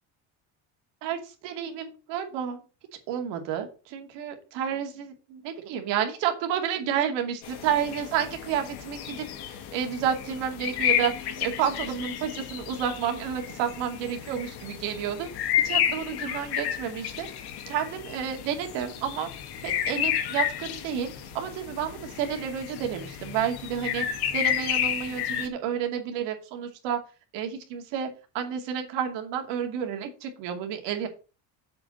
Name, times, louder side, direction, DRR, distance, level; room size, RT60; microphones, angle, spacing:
voice 1, 1.0-2.6 3.1-15.3 15.6-19.3 19.6-24.1 24.3-27.0 27.3-28.1 28.3-31.1, right 8 dB, 85° right, 4 dB, 2.7 m, -30 dB
sound 1, 7.4-25.5, left 10 dB, 65° left, 1.9 m, -31 dB
7.5 x 5.2 x 7.1 m, 0.34 s
cardioid pair, 150°, 42 cm